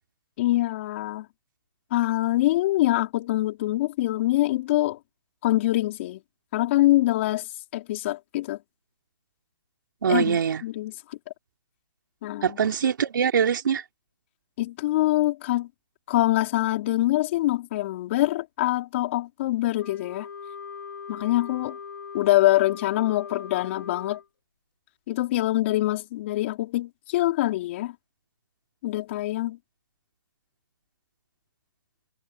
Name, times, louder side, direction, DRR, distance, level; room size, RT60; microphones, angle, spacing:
voice 1, 0.4-1.3 1.9-5.0 5.4-6.2 6.5-8.6 10.1-11.2 12.2-12.6 14.6-15.7 16.1-20.3 21.1-21.8 22.1-24.2 25.1-27.9 28.8-29.6, left 16 dB, 35° left, 4.6 m, -24 dB
voice 2, 10.0-10.6 12.4-13.8, right 7 dB, 60° right, 3.5 m, -23 dB
Wind instrument woodwind instrument, 19.8-24.3, left 6 dB, 75° left, 4.7 m, -40 dB
hypercardioid pair, 160°, 12 cm